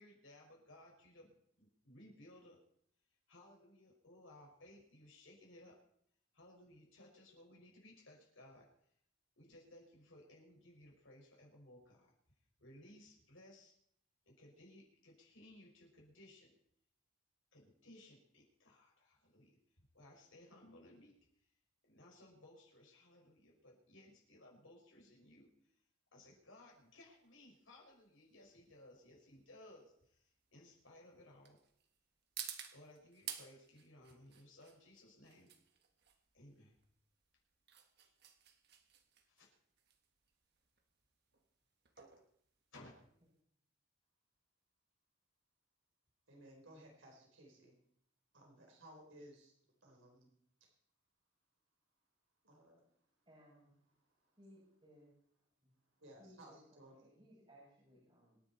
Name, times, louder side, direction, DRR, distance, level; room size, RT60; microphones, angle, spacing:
voice 1, 0.0-2.6 3.3-5.8 6.3-8.7 9.4-12.1 12.6-13.7 14.3-16.5 17.5-19.6 19.9-21.2 21.8-25.7 26.1-31.6 32.7-35.5 36.3-36.7 38.0-38.1 39.3-39.5 42.7-42.9, left 1 dB, 75° left, -1 dB, 5.8 m, -60 dB
sound 1, 26.7-43.4, right 9 dB, 50° right, 1.6 m, -54 dB
voice 2, 46.3-47.7 48.3-49.5 49.8-50.3 52.4-52.8 56.0-57.0, right 1 dB, 75° right, 1 dB, 4.5 m, -59 dB
voice 3, 53.3-53.8 54.4-55.1 55.4-55.7 56.2-58.4, equal, 25° right, -9 dB, 7.6 m, -63 dB
26.0 x 10.5 x 4.4 m, 0.68 s
head